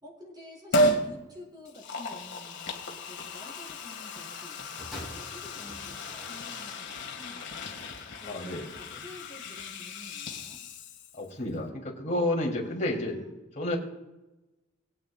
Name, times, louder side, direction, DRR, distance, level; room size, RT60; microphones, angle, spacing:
voice 1, 0.0-7.9 8.2-10.6 12.5-13.2, left 1 dB, 20° right, -3 dB, 4.2 m, -50 dB
Liquid, 0.7-1.1 1.7-11.3 11.6-11.7, equal, 65° left, 1.9 m, -33 dB
sound 1, 4.8-7.0 7.8-7.9, left 1 dB, ahead, 4.3 m, -45 dB
voice 2, 8.2-8.6 8.9-9.0 11.2-13.2 13.6-13.8, left 1 dB, 40° left, -1 dB, 3.0 m, -30 dB
22.5 x 8.8 x 2.4 m, 1.0 s
head